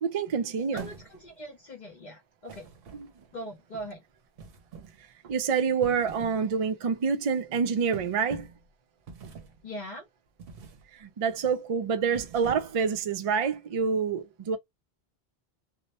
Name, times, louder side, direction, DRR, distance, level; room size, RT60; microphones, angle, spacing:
voice 1, 0.0-0.9 2.9-3.1 5.2-8.5 10.9-14.6, right 6 dB, 55° right, 0.4 m, -27 dB
voice 2, 0.7-2.7 3.3-4.0 9.6-10.1, equal, 50° left, 0.7 m, -41 dB
sound 1, 0.7-1.4 2.5-3.4 4.4-5.0 5.7-6.5 6.8-7.1 7.9-8.7 9.1-9.6 10.4-10.8 11.2-11.5 12.0-12.9, right 5 dB, 70° right, 0.8 m, -44 dB
2.1 x 2.1 x 2.8 m
omnidirectional pair, 1.0 m